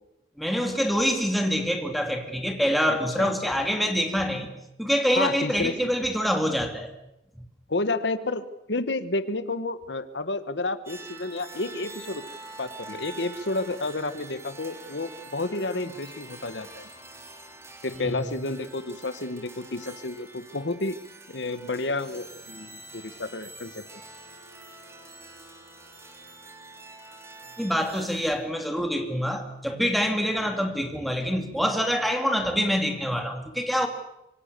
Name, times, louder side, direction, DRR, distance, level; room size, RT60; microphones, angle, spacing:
voice 1, 0.4-4.5 4.8-6.9 17.9-18.2 27.6-33.9, equal, ahead, 2.8 m, -25 dB
voice 2, 2.8-3.3 5.2-5.8 7.7-12.2 12.6-16.9 17.8-21.0 21.3-23.8, left 2 dB, 85° left, 1.4 m, -30 dB
sound 1, 10.9-28.4, right 2 dB, 15° right, 2.9 m, -45 dB
26.0 x 24.0 x 6.9 m
head